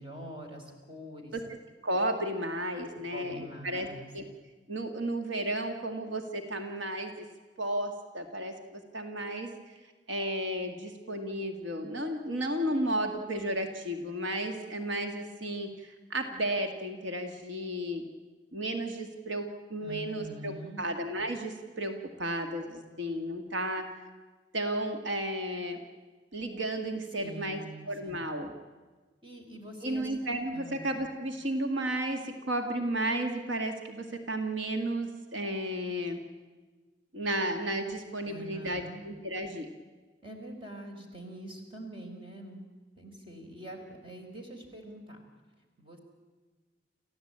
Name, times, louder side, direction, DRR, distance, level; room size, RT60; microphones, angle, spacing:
voice 1, 0.0-1.4 3.1-4.1 19.8-20.8 27.2-28.2 29.2-30.1 30.5-30.8 38.2-39.0 40.2-42.6 43.0-45.2 45.8-46.0, right 1 dB, 30° right, 2 dB, 4.2 m, -44 dB
voice 2, 1.8-3.9 4.1-4.3 4.7-7.3 7.6-9.5 10.1-18.0 18.5-23.9 24.5-25.8 26.3-27.6 27.9-28.5 29.8-36.2 37.1-39.7, right 1 dB, 80° right, 5 dB, 2.0 m, -33 dB
28.5 x 15.0 x 8.7 m, 1.3 s
head